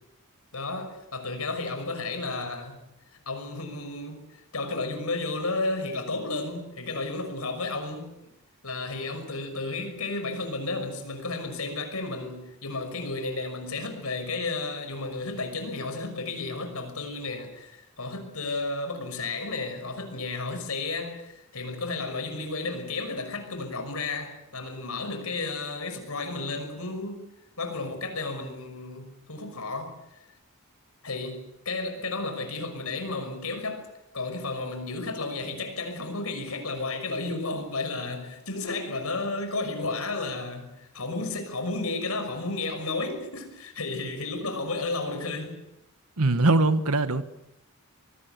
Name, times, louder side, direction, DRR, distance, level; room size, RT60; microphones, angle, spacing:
voice 1, 0.5-2.8 3.3-8.2 8.6-27.3 27.6-30.2 31.0-33.9 34.1-45.6, left 3 dB, 75° left, 6.0 m, -33 dB
voice 2, 46.2-47.2, right 2 dB, 85° right, 1.4 m, -21 dB
25.0 x 20.0 x 8.3 m
head